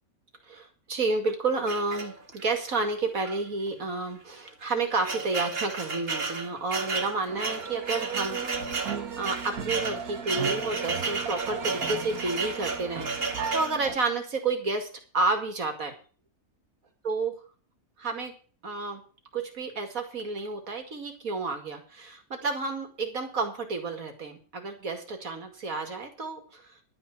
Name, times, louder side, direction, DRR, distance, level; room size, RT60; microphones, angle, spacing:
voice 1, 0.5-8.4 8.7-14.9 15.1-15.9 17.0-17.4 18.0-18.3 18.6-19.0 19.3-26.7, right 3 dB, 70° right, 5 dB, 2.7 m, -30 dB
sound 1, 1.7-2.5 3.2-3.4 3.7-3.8 4.5-13.8, right 4 dB, 45° right, 1.8 m, -33 dB
sound 2, 7.3-14.0, right 6 dB, 85° right, 1.8 m, -36 dB
12.0 x 6.1 x 8.3 m, 0.39 s
omnidirectional pair, 1.5 m